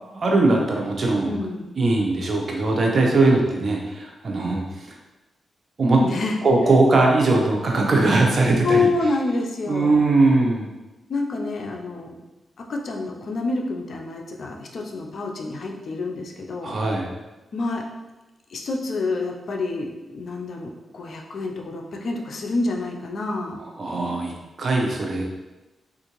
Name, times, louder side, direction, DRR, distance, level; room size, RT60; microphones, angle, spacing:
voice 1, 0.0-1.3 1.8-4.9 5.8-6.0 6.4-8.9 9.7-10.7 16.6-17.1 23.8-24.3 24.6-25.2, right 2 dB, 55° right, 0 dB, 0.7 m, -20 dB
voice 2, 1.2-1.7 6.0-6.4 8.6-10.0 11.1-12.2 12.7-16.7 17.5-17.8 18.5-23.6, left 3 dB, 65° left, 1 dB, 0.5 m, -27 dB
3.6 x 2.5 x 3.0 m, 1.1 s
cardioid pair, 65°, 0 cm